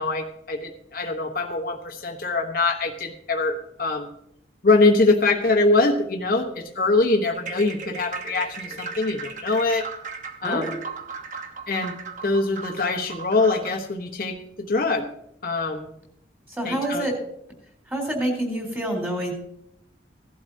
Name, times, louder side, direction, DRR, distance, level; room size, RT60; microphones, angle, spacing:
voice 1, 0.0-4.1 4.6-9.8 10.4-10.7 11.7-11.9 12.2-15.1 15.4-15.9 16.6-17.1, left 3 dB, 50° left, 1 dB, 1.1 m, -23 dB
sound 1, 7.3-13.8, right 5 dB, 45° right, 1.1 m, -37 dB
voice 2, 10.4-10.7 16.5-17.2 17.9-19.3, right 1 dB, 10° right, 0 dB, 3.9 m, -27 dB
17.0 x 12.0 x 2.8 m, 0.74 s
head